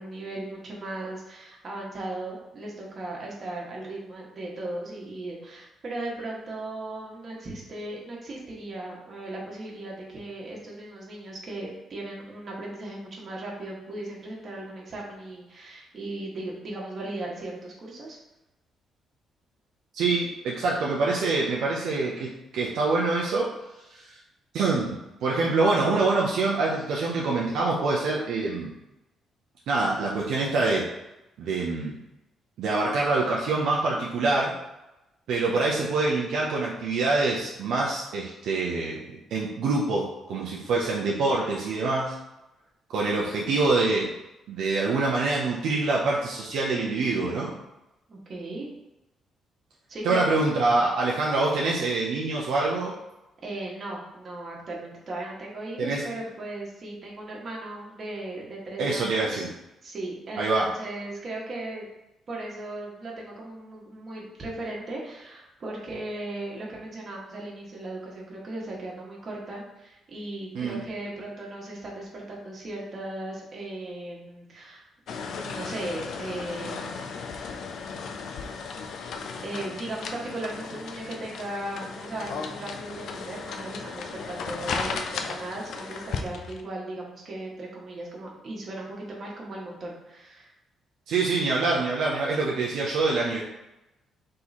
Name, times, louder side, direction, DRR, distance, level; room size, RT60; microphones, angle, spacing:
voice 1, 0.0-18.2 48.1-48.7 49.9-50.4 53.4-59.5 59.8-61.9 62.3-74.8 75.3-77.1 77.4-77.7 79.4-90.5, right 2 dB, 45° right, -3 dB, 1.4 m, -37 dB
voice 2, 19.9-23.5 23.9-24.2 24.5-25.0 25.2-28.7 29.7-30.9 31.4-32.0 32.6-34.5 35.3-42.1 42.9-44.1 44.5-47.5 50.0-52.9 55.8-56.0 58.8-59.5 60.4-60.7 70.5-70.8 91.1-93.4, right 3 dB, 80° right, -3 dB, 0.6 m, -25 dB
sound 1, 75.1-86.6, left 5 dB, 70° left, 0.4 m, -35 dB
3.7 x 2.9 x 4.1 m, 0.95 s
cardioid pair, 90°, 0 cm